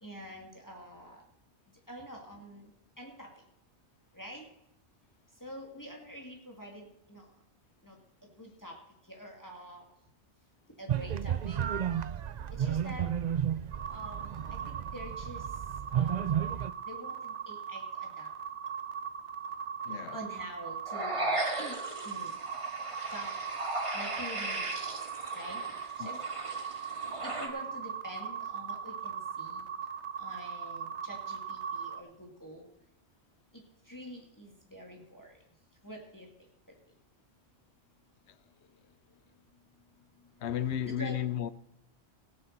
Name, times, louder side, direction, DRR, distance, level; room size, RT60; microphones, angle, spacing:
voice 1, 0.0-1.2 1.9-2.7 3.0-3.3 4.1-4.5 5.4-7.3 7.8-8.0 8.4-8.8 9.1-9.8 10.8-11.6 12.6-13.1 13.9-15.4 15.9-16.3 16.9-18.3 20.1-21.8 22.0-22.3 23.1-23.3 23.9-24.7 25.3-26.2 27.2-29.7 30.2-32.7 33.5-35.4 35.8-36.3 40.4-40.5 40.8-41.1, equal, 15° left, 2.2 m, -46 dB
sound 1, 10.9-16.7, right 9 dB, 55° right, 0.5 m, -32 dB
sound 2, 13.7-32.0, right 7 dB, 80° right, 1.1 m, -39 dB
voice 2, 19.9-20.2 26.0-26.1 40.4-41.5, left 10 dB, 70° left, 0.9 m, -33 dB
sound 3, 20.9-27.5, right 2 dB, 25° right, 1.9 m, -37 dB
18.5 x 6.6 x 6.6 m
omnidirectional pair, 1.2 m